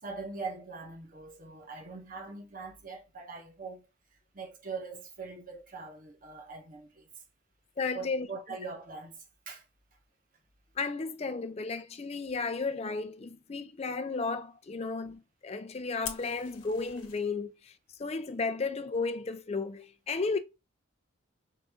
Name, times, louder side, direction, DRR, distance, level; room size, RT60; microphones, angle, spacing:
voice 1, 0.0-3.8 4.3-7.1 7.9-9.6, right 4 dB, 40° right, 0.9 m, -42 dB
voice 2, 7.8-8.3 10.8-17.7 18.0-20.4, left 4 dB, 30° left, 0.4 m, -33 dB
Fire, 16.0-17.2, left 8 dB, 65° left, 1.0 m, -42 dB
4.8 x 2.6 x 3.5 m
head